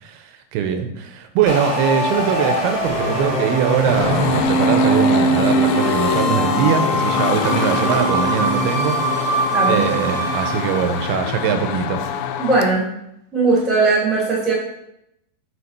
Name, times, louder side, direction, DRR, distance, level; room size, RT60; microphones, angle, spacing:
voice 1, 0.0-9.0 9.7-12.0, right 8 dB, 85° right, 7 dB, 2.6 m, -22 dB
sound 1, 1.5-11.1, right 1 dB, 35° left, 2.1 m, -21 dB
sound 2, 3.9-12.7, left 9 dB, 85° left, 2.1 m, -25 dB
voice 2, 9.5-10.1 12.4-12.9 13.3-14.5, right 3 dB, ahead, -5 dB, 1.2 m, -19 dB
6.5 x 5.0 x 4.2 m, 0.79 s
omnidirectional pair, 4.6 m